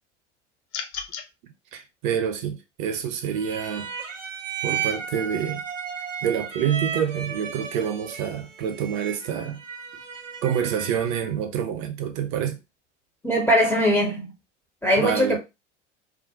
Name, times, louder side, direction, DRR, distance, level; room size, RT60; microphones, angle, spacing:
sound 1, 0.7-1.3, left 7 dB, 60° left, 0.5 m, -33 dB
voice 1, 1.4-3.9 4.6-5.6 6.2-9.6 10.4-12.6 15.0-15.4, right 8 dB, 40° right, 0.6 m, -27 dB
sound 2, 3.3-11.4, right 7 dB, 85° right, 0.5 m, -34 dB
voice 2, 13.2-14.3 14.8-15.4, equal, 5° left, 0.5 m, -21 dB
2.4 x 2.0 x 2.7 m
figure-of-eight pair, 80°, 37 cm